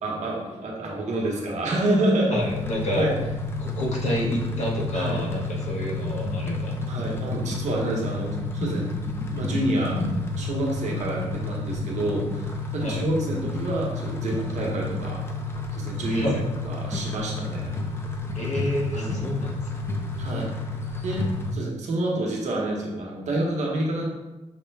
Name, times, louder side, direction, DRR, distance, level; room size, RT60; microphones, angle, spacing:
voice 1, 0.0-2.4 2.9-3.1 4.9-5.2 6.9-8.9 9.3-10.0 10.4-15.2 15.7-16.3 16.6-17.8 18.9-19.3 20.2-20.5 21.0-24.1, right 1 dB, 65° right, -2 dB, 1.0 m, -28 dB
voice 2, 2.3-3.1 3.6-6.8 12.8-13.1 16.1-16.4 18.3-19.6, left 1 dB, 65° left, -3 dB, 1.0 m, -28 dB
sound 1, 2.3-21.5, left 2 dB, 20° left, 0.4 m, -30 dB
5.8 x 2.2 x 3.3 m, 1.1 s
wide cardioid pair, 135°, 13 cm